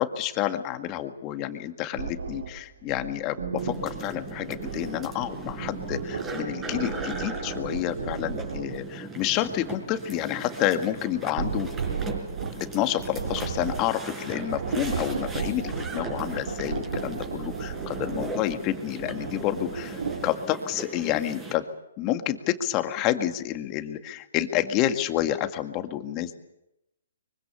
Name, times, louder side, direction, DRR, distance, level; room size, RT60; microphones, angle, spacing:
voice 1, 0.0-11.7 12.6-21.7 22.0-26.3, left 12 dB, 30° left, 8 dB, 2.0 m, -29 dB
sound 1, 2.0-8.8 9.2-20.3, right 5 dB, 75° right, 3.3 m, -34 dB
sound 2, 3.6-21.5, right 2 dB, 15° right, 5.2 m, -39 dB
24.5 x 24.0 x 7.1 m, 0.85 s
hypercardioid pair, 145°, 0 cm